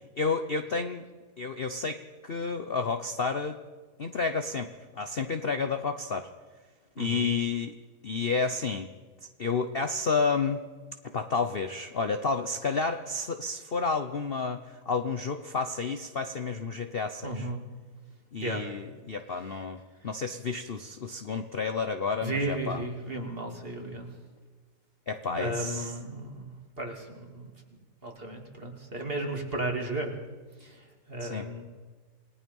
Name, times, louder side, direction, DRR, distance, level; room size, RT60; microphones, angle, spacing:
voice 1, 0.2-1.0 1.4-3.6 4.0-4.7 4.9-6.3 7.0-7.7 8.0-8.9 9.4-10.6 11.1-17.5 18.3-19.8 20.0-22.8 25.1-25.9 31.2-31.4, left 4 dB, 45° left, 7 dB, 0.9 m, -30 dB
voice 2, 7.0-7.3 17.2-17.6 18.4-18.6 19.3-19.5 22.2-24.1 25.3-26.5 26.8-30.1 30.6-31.6, right 1 dB, 35° right, 2 dB, 3.0 m, -35 dB
28.5 x 19.0 x 5.5 m, 1.4 s
omnidirectional pair, 1.8 m